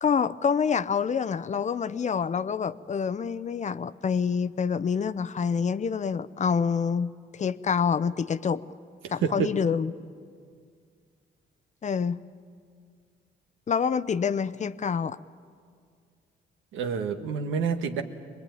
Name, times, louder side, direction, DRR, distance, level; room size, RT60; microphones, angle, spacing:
voice 1, 0.0-8.6 9.1-9.9 11.8-12.2 13.7-15.2, left 6 dB, 35° left, 16 dB, 0.6 m, -27 dB
voice 2, 9.0-9.5 16.7-18.0, right 6 dB, 90° right, 6 dB, 1.5 m, -28 dB
23.5 x 20.5 x 9.3 m, 2.2 s
cardioid pair, 90°, 20 cm